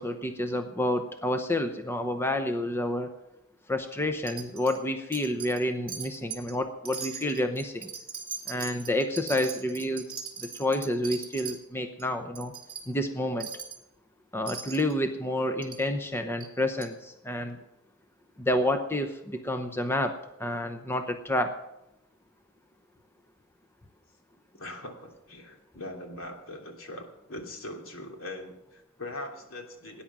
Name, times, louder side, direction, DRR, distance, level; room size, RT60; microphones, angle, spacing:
voice 1, 0.0-3.1 3.7-7.9 8.5-10.0 10.4-12.5 12.9-13.5 14.3-17.6 18.4-21.6, left 1 dB, 10° left, 7 dB, 0.8 m, -29 dB
Wind chime, 4.3-4.8 5.1-5.6 5.9-6.5 6.8-11.6 12.0-12.1 12.3-12.8 13.4-13.8 14.5-14.9 15.6-15.8 16.4-16.5 16.8-16.9, right 6 dB, 25° right, 2.8 m, -39 dB
voice 2, 24.5-30.0, left 1 dB, 70° left, 2 dB, 3.1 m, -41 dB
19.0 x 10.0 x 6.2 m, 0.90 s
head